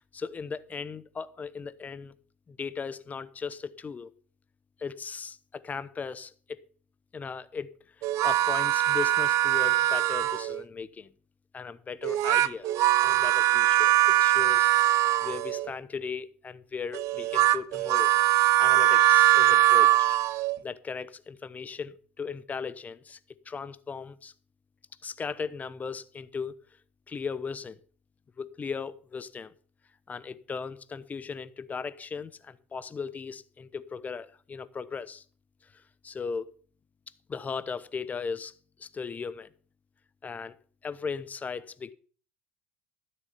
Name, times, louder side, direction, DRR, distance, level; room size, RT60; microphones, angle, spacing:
voice 1, 0.0-2.1 2.5-4.1 4.8-6.6 7.1-11.1 11.5-12.7 13.0-14.9 15.2-18.1 18.6-20.2 20.6-23.2 23.4-24.3 25.0-26.5 27.1-27.8 28.4-29.5 30.1-35.2 35.6-36.5 37.3-38.5 38.8-39.5 40.2-40.6 40.8-41.9, left 5 dB, 25° left, 0.9 m, -37 dB
sound 1, 8.0-10.6 12.0-15.7 16.9-20.6, right 14 dB, 55° right, 0.6 m, -22 dB
13.0 x 7.8 x 5.6 m
hypercardioid pair, 80°, 6 cm